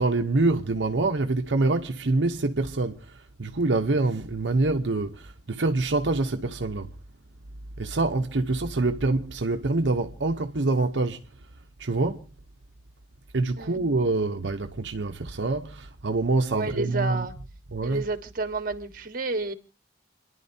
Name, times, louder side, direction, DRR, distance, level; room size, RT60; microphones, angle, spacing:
voice 1, 0.0-7.0 7.8-11.3 11.8-12.3 13.3-17.3 17.7-18.1, right 2 dB, 80° right, 0.9 m, -26 dB
voice 2, 16.5-17.3 17.8-19.5, right 3 dB, 50° right, 1.5 m, -30 dB
29.5 x 11.0 x 2.8 m
head